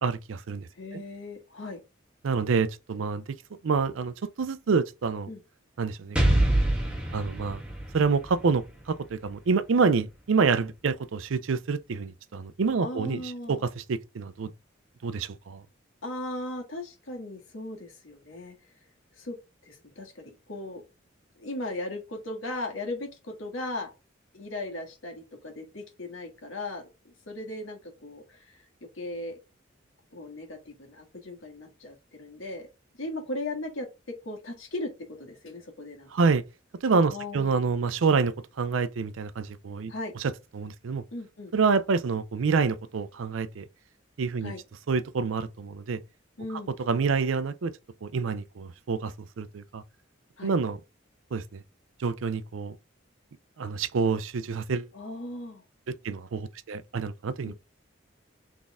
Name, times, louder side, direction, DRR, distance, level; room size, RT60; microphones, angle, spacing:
voice 1, 0.0-0.7 0.9-1.0 2.2-3.4 3.6-5.3 5.8-6.4 7.1-7.6 7.9-13.2 13.5-14.5 15.0-15.6 36.1-36.4 36.8-39.9 40.2-41.0 41.5-43.7 44.2-44.5 44.9-46.0 46.9-47.7 48.0-49.8 50.4-50.8 51.3-51.6 52.0-52.8 53.6-54.9 56.0-57.5, right 5 dB, 80° right, 0.5 m, -27 dB
voice 2, 0.7-1.8 5.3-5.4 12.8-13.6 16.0-18.5 19.1-19.4 19.6-20.8 21.4-23.9 24.3-28.6 28.9-29.4 30.1-32.7 32.9-34.9 35.2-36.3 37.1-37.6 39.9-40.1 41.1-41.5 44.4-44.6 46.4-46.7 50.4-50.5 54.9-55.6 57.4-57.5, left 2 dB, 90° left, 1.6 m, -37 dB
Explosion, 6.2-9.9, right 1 dB, 5° right, 1.3 m, -26 dB
4.1 x 3.6 x 3.5 m
head